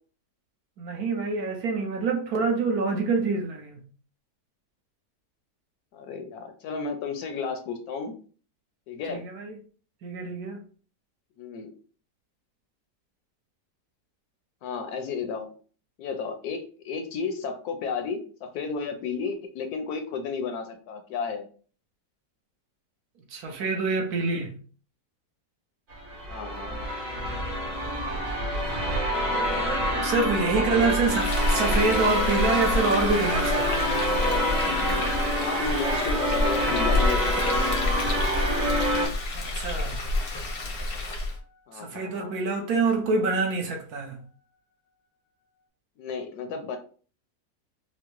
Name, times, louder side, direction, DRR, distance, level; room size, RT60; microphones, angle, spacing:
voice 1, 0.8-3.8 9.1-9.6 10.0-10.6 23.3-24.5 29.3-34.0 39.3-40.0 41.7-44.2, right 3 dB, 70° right, 1.1 m, -26 dB
voice 2, 5.9-8.1 8.9-9.3 11.4-11.7 14.6-15.5 16.0-21.5 26.3-26.8 30.6-30.9 35.4-37.7 41.7-42.3 46.0-46.8, left 5 dB, 70° left, 1.0 m, -33 dB
sound 1, 25.9-39.1, equal, 45° right, 1.4 m, -27 dB
sound 2, 30.0-42.2, left 4 dB, 90° right, 1.8 m, -43 dB
Frying (food), 31.0-41.4, left 2 dB, 50° left, 0.7 m, -29 dB
4.5 x 2.0 x 2.9 m
omnidirectional pair, 1.9 m